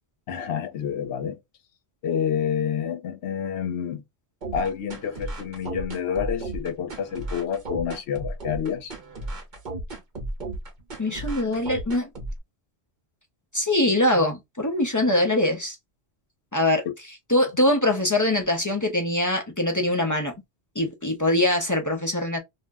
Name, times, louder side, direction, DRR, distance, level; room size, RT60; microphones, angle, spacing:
voice 1, 0.3-1.4 2.0-4.0 4.5-8.9, left 8 dB, 80° left, 0.9 m, -28 dB
sound 1, 4.4-12.4, right 2 dB, 50° right, 0.9 m, -34 dB
voice 2, 11.0-12.1 13.5-15.8 16.5-16.8 17.3-20.3 20.8-22.4, left 1 dB, 25° left, 0.4 m, -23 dB
2.5 x 2.0 x 3.4 m
omnidirectional pair, 1.1 m